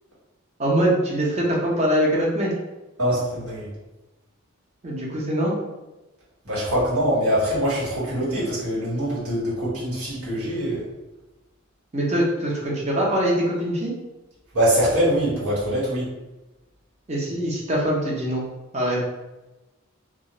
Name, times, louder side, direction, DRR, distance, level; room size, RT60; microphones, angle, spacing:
voice 1, 0.6-2.5 4.8-5.5 11.9-13.9 17.1-18.4 18.7-19.0, right 1 dB, 30° right, -4 dB, 0.6 m, -23 dB
voice 2, 3.0-3.7 6.4-10.8 14.5-16.1, equal, 90° right, -8 dB, 1.4 m, -23 dB
2.4 x 2.3 x 3.0 m, 1.1 s
head